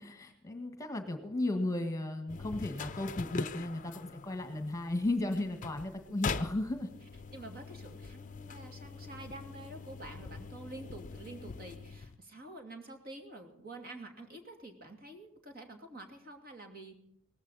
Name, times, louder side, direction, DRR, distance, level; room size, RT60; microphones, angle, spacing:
voice 1, 0.0-6.9, left 2 dB, 15° left, 6 dB, 1.7 m, -35 dB
sound 1, 2.3-12.2, left 4 dB, 35° left, 0.6 m, -43 dB
voice 2, 7.3-17.0, right 2 dB, 45° right, 4 dB, 2.7 m, -48 dB
18.5 x 15.0 x 4.2 m, 0.72 s
head